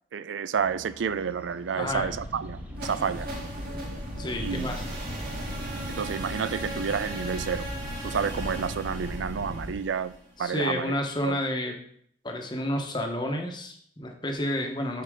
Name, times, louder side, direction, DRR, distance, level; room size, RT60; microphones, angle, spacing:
voice 1, 0.1-3.3 4.4-4.7 5.9-7.7 8.0-10.1 10.4-10.9 11.2-11.4, right 6 dB, 90° right, 0.4 m, -30 dB
sound 1, 0.5-8.5, equal, 10° right, 1.0 m, -51 dB
voice 2, 1.8-2.1 3.7-3.9 4.2-4.8 10.4-11.8 12.2-15.0, left 1 dB, 25° left, 1.0 m, -30 dB
sound 2, 1.8-9.7, equal, 35° right, 1.5 m, -38 dB
sound 3, 2.7-10.6, equal, 55° right, 2.0 m, -38 dB
8.4 x 5.8 x 3.7 m
head